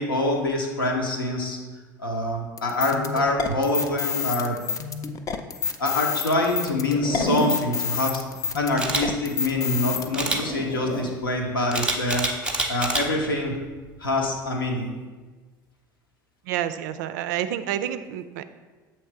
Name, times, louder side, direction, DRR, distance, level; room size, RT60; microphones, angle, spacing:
voice 1, 0.0-1.6 2.0-4.6 5.8-8.2 8.5-12.3 12.7-13.6 14.0-14.9, left 2 dB, 80° left, 1 dB, 0.9 m, -25 dB
sound 1, 2.6-10.1, left 6 dB, 30° left, 0.4 m, -29 dB
Zipper (clothing), 6.9-7.6 9.8-11.1 13.0-13.3, right 1 dB, 50° left, 0.8 m, -30 dB
Camera, 8.8-9.0 10.1-10.4 11.7-13.0 13.5-13.8, right 2 dB, 10° right, 0.7 m, -26 dB
voice 2, 16.5-18.5, right 11 dB, 60° right, 11 dB, 0.3 m, -29 dB
7.2 x 3.1 x 4.5 m, 1.3 s
figure-of-eight pair, 70°, 11 cm